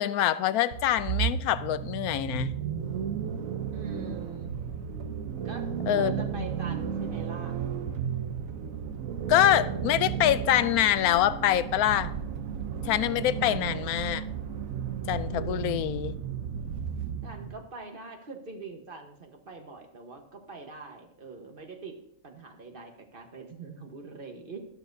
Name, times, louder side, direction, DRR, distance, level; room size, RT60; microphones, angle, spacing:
voice 1, 0.0-2.5 5.9-6.1 9.3-12.1 12.8-14.2 15.1-16.2, left 12 dB, 90° left, 15 dB, 1.1 m, -25 dB
sound 1, 0.7-17.6, right 8 dB, 70° right, 1.1 m, -33 dB
voice 2, 3.7-4.6 5.4-7.6 17.2-22.0 22.2-24.6, right 4 dB, 40° right, 4 dB, 1.3 m, -43 dB
12.0 x 12.0 x 2.7 m, 0.74 s
omnidirectional pair, 1.5 m